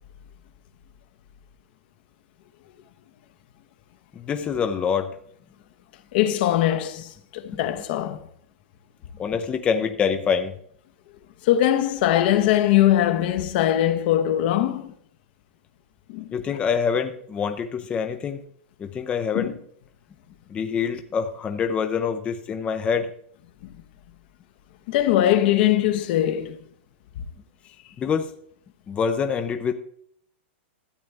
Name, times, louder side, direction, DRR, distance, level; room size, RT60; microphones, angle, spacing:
voice 1, 4.2-5.1 7.5-7.6 9.2-10.5 16.3-18.4 18.8-19.5 20.5-23.1 28.0-28.3 28.9-29.7, left 6 dB, 20° left, 0.5 m, -25 dB
voice 2, 6.1-8.2 11.4-14.9 16.1-16.3 19.3-19.5 24.9-26.6, left 12 dB, 55° left, 0.9 m, -21 dB
13.0 x 7.7 x 3.4 m
hypercardioid pair, 140°, 6 cm